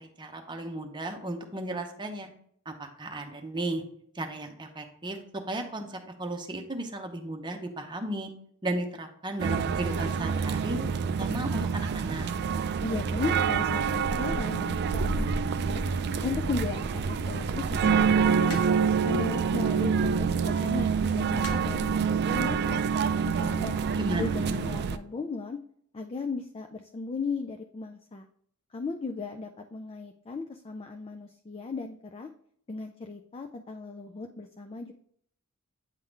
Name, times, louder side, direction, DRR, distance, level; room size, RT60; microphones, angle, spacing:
voice 1, 0.0-2.3 2.7-3.8 4.1-5.2 5.5-8.3 8.6-12.3 24.0-24.3, right 1 dB, 20° right, 4 dB, 0.8 m, -35 dB
sound 1, 9.4-25.0, right 6 dB, 50° right, 0.4 m, -27 dB
voice 2, 12.8-15.8 16.2-18.6 19.0-22.8 23.2-23.8 24.2-25.6 25.9-28.3 28.7-32.3 32.7-34.9, left 4 dB, 25° left, 6 dB, 0.4 m, -36 dB
sound 2, 18.5-19.0 20.2-20.5 21.4-21.9 22.9-23.2, left 3 dB, 75° left, 0.9 m, -41 dB
8.9 x 3.8 x 3.2 m, 0.65 s
head